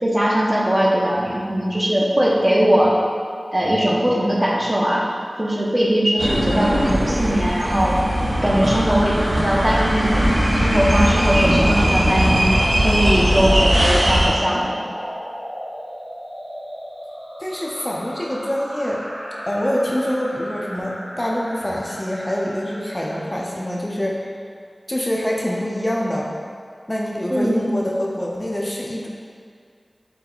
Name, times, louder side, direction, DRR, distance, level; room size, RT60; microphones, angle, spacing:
voice 1, 0.0-3.0 3.5-5.0 5.4-8.0 8.4-10.3 10.5-12.5 12.8-14.8 27.3-27.6, equal, 25° right, -4 dB, 0.7 m, -20 dB
sound 1, 6.2-14.3, equal, 60° right, 0.7 m, -19 dB
sound 2, 8.1-23.7, equal, 80° right, 1.2 m, -32 dB
voice 2, 17.4-19.0 19.5-24.3 24.9-26.3 26.9-29.1, equal, 25° left, -3 dB, 0.5 m, -25 dB
4.6 x 2.1 x 3.8 m, 2.2 s
wide cardioid pair, 40°, 0 cm